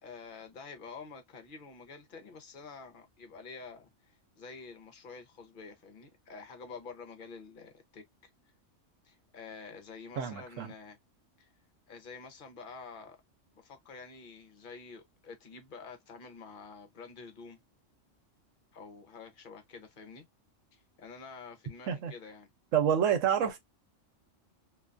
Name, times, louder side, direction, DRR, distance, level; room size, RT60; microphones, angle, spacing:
voice 1, 0.0-8.0 9.0-11.0 11.4-11.5 11.9-13.2 13.6-17.6 18.7-20.3 20.7-22.5 23.4-23.6, left 4 dB, 50° left, 0.7 m, -48 dB
voice 2, 10.2-10.7 21.9-22.1 22.7-23.6, right 8 dB, 80° right, 1.0 m, -28 dB
2.5 x 2.2 x 2.4 m
omnidirectional pair, 1.3 m